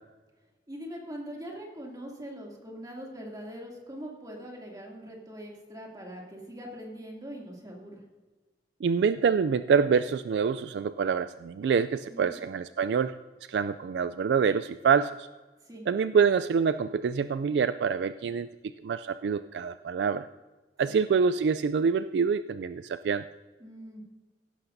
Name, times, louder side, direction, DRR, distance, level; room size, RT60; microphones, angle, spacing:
voice 1, 0.7-8.0 12.1-12.4 15.6-15.8 20.9-21.0 23.6-24.0, equal, 20° right, -1 dB, 2.5 m, -42 dB
voice 2, 8.8-13.1 13.5-15.3 15.9-18.5 18.8-20.3 20.8-23.2, right 6 dB, 70° right, 13 dB, 0.3 m, -26 dB
16.0 x 11.5 x 2.6 m, 1.3 s
head